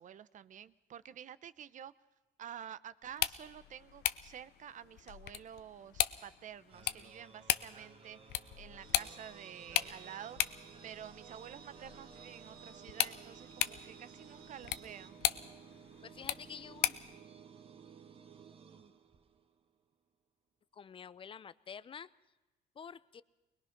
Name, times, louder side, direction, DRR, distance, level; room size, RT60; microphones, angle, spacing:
voice 1, 0.0-1.9 2.4-10.4 10.8-15.2, right 9 dB, 50° right, 17 dB, 0.7 m, -50 dB
sound 1, 3.0-17.2, left 13 dB, 75° left, 0.7 m, -38 dB
sound 2, 6.7-19.6, right 7 dB, 35° right, 1.5 m, -56 dB
sound 3, 8.8-15.1, right 7 dB, 75° right, 1.7 m, -59 dB
voice 2, 16.0-17.0 20.7-22.1 22.8-23.2, left 7 dB, 30° left, 18 dB, 0.6 m, -48 dB
21.5 x 21.0 x 5.9 m, 1.1 s
cardioid pair, 110°, 17 cm